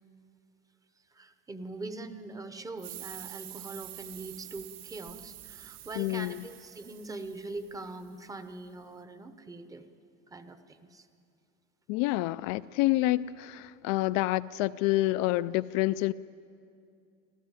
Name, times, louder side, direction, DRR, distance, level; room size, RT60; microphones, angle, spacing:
voice 1, 1.1-9.9 10.3-11.1, right 2 dB, 10° right, 0.7 m, -42 dB
sound 1, 2.8-8.1, right 14 dB, 80° right, 1.6 m, -47 dB
voice 2, 6.0-6.4 11.9-16.1, left 17 dB, 60° left, 0.4 m, -28 dB
26.0 x 14.0 x 8.9 m
cardioid pair, 175°, 32 cm